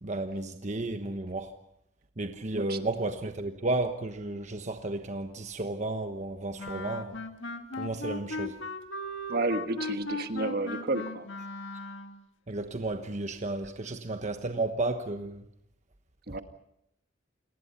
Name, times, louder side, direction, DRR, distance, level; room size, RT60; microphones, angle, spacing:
voice 1, 0.0-1.5 2.2-7.2 7.8-8.6 12.5-15.5 16.3-16.4, right 2 dB, 40° right, 1.2 m, -33 dB
Wind instrument woodwind instrument, 6.6-12.2, left 2 dB, 70° left, 1.9 m, -38 dB
voice 2, 9.3-11.3 16.3-16.4, right 2 dB, 55° right, 1.4 m, -31 dB
29.0 x 19.5 x 5.7 m
head